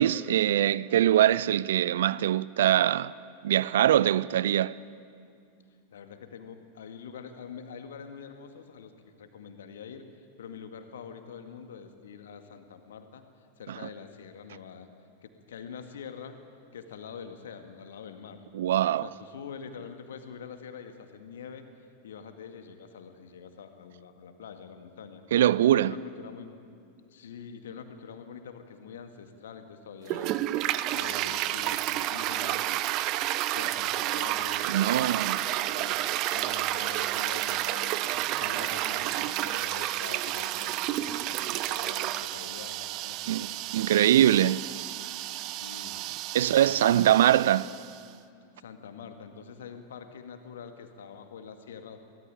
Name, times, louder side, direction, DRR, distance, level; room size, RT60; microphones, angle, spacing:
voice 1, 0.0-3.1 3.4-4.8 13.7-13.8 18.5-19.1 25.3-25.9 34.7-35.4 43.3-43.5 43.7-44.6 46.3-47.6, right 12 dB, 60° right, 0.5 m, -22 dB
voice 2, 5.9-10.0 10.4-13.2 13.6-14.9 15.2-16.4 16.7-18.5 19.0-21.7 22.0-25.2 25.7-26.5 27.1-30.3 30.6-32.7 33.5-36.0 36.3-44.2 45.5-46.1 46.4-47.5 48.6-52.0, left 6 dB, 60° left, 2.0 m, -45 dB
Toilet flush, 30.0-48.0, right 14 dB, 40° right, 0.8 m, -31 dB
23.5 x 18.5 x 9.0 m
figure-of-eight pair, 90°, 0 cm